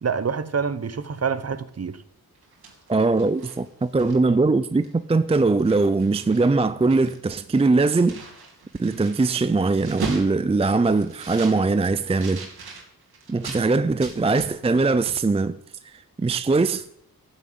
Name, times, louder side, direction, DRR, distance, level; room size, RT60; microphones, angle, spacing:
voice 1, 0.0-2.0, right 6 dB, 40° right, 0.9 m, -27 dB
sound 1, 2.3-4.4 4.8-5.0 5.3-6.5 6.8-13.6 14.0-14.8 15.1-15.2, right 4 dB, 90° right, 2.7 m, -39 dB
voice 2, 2.9-8.3 8.8-12.5 13.3-15.6 15.8-16.8, right 3 dB, 15° right, 0.4 m, -21 dB
12.5 x 7.2 x 8.6 m
wide cardioid pair, 90°, 37 cm